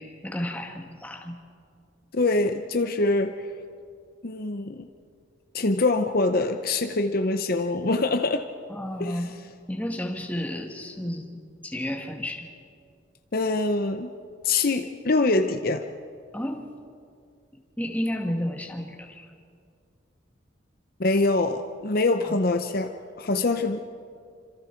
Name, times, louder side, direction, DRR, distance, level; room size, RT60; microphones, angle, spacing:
voice 1, 0.0-1.4 8.7-9.3 9.7-12.5 16.3-16.7 17.8-19.3 22.2-22.4, left 1 dB, 10° left, 3 dB, 1.8 m, -32 dB
voice 2, 2.1-3.5 4.2-4.9 5.5-8.5 9.0-9.2 13.3-14.1 14.4-15.8 21.0-23.8, left 2 dB, 50° left, 7 dB, 0.8 m, -24 dB
27.5 x 26.0 x 4.6 m, 2.3 s
head